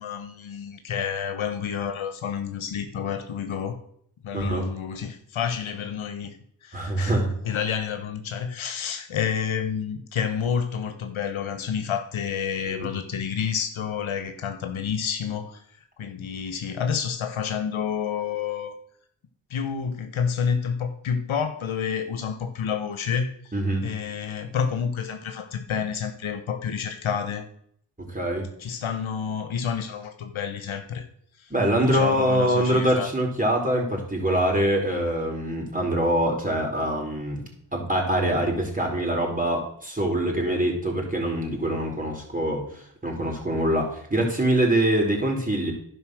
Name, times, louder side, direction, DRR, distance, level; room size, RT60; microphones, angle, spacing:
voice 1, 0.0-3.8 4.2-6.4 6.6-15.6 16.0-18.7 19.5-23.5 23.8-27.5 28.6-31.1 31.4-31.5 31.8-33.1, left 7 dB, 70° left, 8 dB, 1.2 m, -29 dB
voice 2, 6.7-7.3 12.8-12.9 23.5-23.8 28.1-28.5 31.5-37.4 37.7-45.7, right 1 dB, 15° right, 0 dB, 4.5 m, -24 dB
11.0 x 5.4 x 6.4 m, 0.66 s
supercardioid pair, 40°, 49 cm